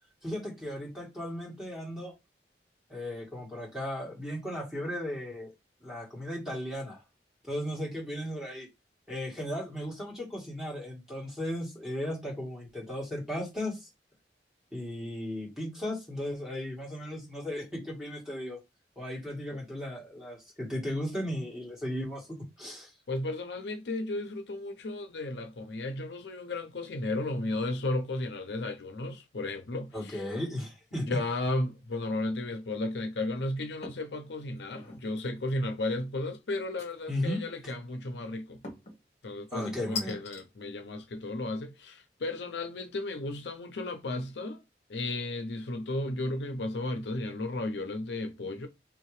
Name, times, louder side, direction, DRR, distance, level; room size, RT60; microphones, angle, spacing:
voice 1, 0.2-2.1 2.9-5.5 5.8-7.0 7.4-8.7 9.1-13.9 14.7-18.6 18.9-22.9 29.9-31.2 37.1-37.4 39.5-40.2, left 1 dB, 5° right, 1.5 m, -36 dB
voice 2, 23.1-30.2 31.1-38.6 39.2-44.6 44.9-48.7, left 2 dB, 80° left, 0.6 m, -34 dB
sound 1, 33.8-34.1 34.6-35.1 36.8-37.3 38.6-39.0 40.0-40.4, left 5 dB, 40° left, 1.0 m, -40 dB
3.7 x 2.8 x 3.1 m
head